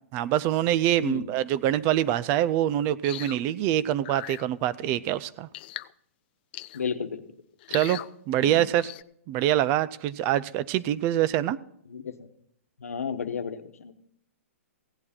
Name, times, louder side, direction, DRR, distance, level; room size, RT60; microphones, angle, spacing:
voice 1, 0.1-5.5 7.7-8.0 8.3-8.9 9.3-11.6, right 12 dB, 30° right, 17 dB, 0.4 m, -25 dB
sound 1, 3.0-3.4 4.0-4.4 5.5-5.9 6.5-6.9 7.6-8.1 8.8-9.0, left 16 dB, 45° left, 0.3 m, -38 dB
voice 2, 6.7-7.2 7.7-7.8 8.4-8.6 11.9-12.2 12.8-13.9, left 6 dB, 85° left, 9 dB, 1.0 m, -33 dB
16.0 x 8.6 x 4.3 m, 0.70 s
hypercardioid pair, 135°, 8 cm